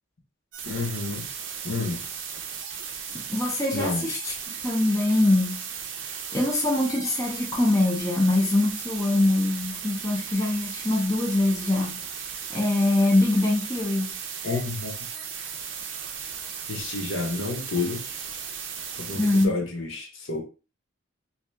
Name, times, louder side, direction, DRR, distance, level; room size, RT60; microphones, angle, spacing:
sound 1, 0.5-19.5, right 7 dB, 70° right, 0.6 m, -36 dB
voice 1, 0.6-1.3 1.6-2.0 3.7-4.1 14.4-15.1 16.7-18.0 19.0-20.4, left 3 dB, 70° left, 0.8 m, -30 dB
voice 2, 3.1-4.3 4.6-5.7 6.3-12.0 12.5-14.2 19.1-19.6, left 2 dB, 15° left, 0.5 m, -23 dB
2.8 x 2.6 x 3.3 m
head